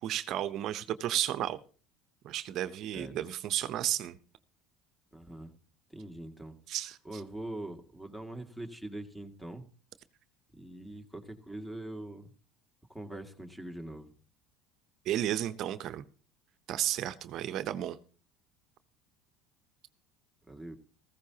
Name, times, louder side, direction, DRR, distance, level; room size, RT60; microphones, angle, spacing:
voice 1, 0.0-1.6 2.2-4.2 6.7-7.2 15.0-16.0 16.7-18.0, right 12 dB, 55° right, 13 dB, 0.8 m, -33 dB
voice 2, 5.1-5.6 5.9-6.6 7.0-9.7 10.5-12.3 12.9-14.1 20.5-20.8, right 1 dB, ahead, 6 dB, 2.1 m, -43 dB
15.0 x 15.0 x 2.9 m, 0.39 s
supercardioid pair, 100°, 0 cm